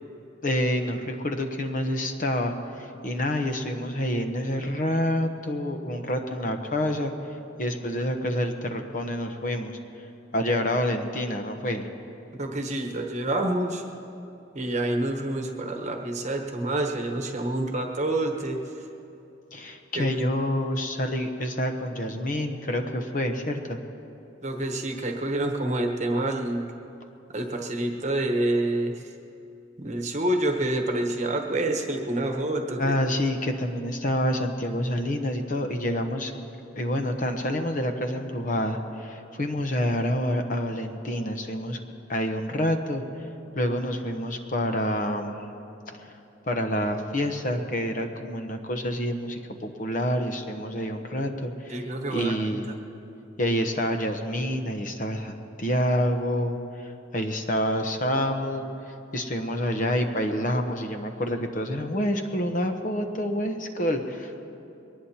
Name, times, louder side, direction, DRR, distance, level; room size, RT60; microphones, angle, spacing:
voice 1, 0.4-7.1 7.6-9.8 10.3-11.9 19.5-23.8 32.8-36.3 36.7-41.8 42.1-43.0 43.5-45.4 45.9-46.2 46.5-52.7 53.4-58.7 59.1-64.4, equal, 45° left, 5 dB, 0.9 m, -28 dB
voice 2, 12.4-13.8 14.5-18.6 20.0-20.2 24.4-26.7 27.3-29.0 29.8-33.0 51.7-52.6, right 1 dB, 35° right, 3 dB, 1.1 m, -27 dB
22.5 x 19.0 x 2.9 m, 2.8 s
head